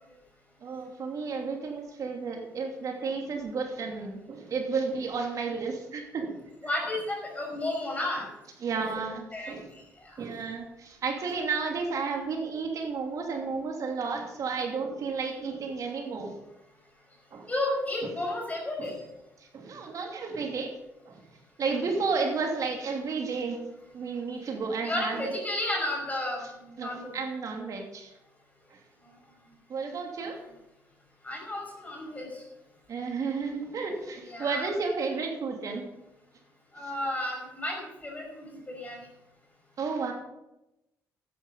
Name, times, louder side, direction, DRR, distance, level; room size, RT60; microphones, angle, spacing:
voice 1, 0.6-6.4 7.5-7.6 8.6-9.7 10.2-16.4 17.3-17.5 18.8-18.9 19.5-20.8 21.1-21.2 21.6-23.6 23.9-25.3 26.8-28.1 29.7-30.4 32.9-35.8 36.8-36.9 39.8-40.1, right 4 dB, 55° right, 2 dB, 2.6 m, -32 dB
voice 2, 6.6-8.3 9.3-9.5 10.0-10.2 17.5-18.9 24.8-27.1 31.2-32.4 34.3-34.7 36.7-39.0, left 1 dB, 20° left, -2 dB, 5.5 m, -32 dB
12.5 x 9.7 x 5.5 m, 0.93 s
cardioid pair, 85°, 7 cm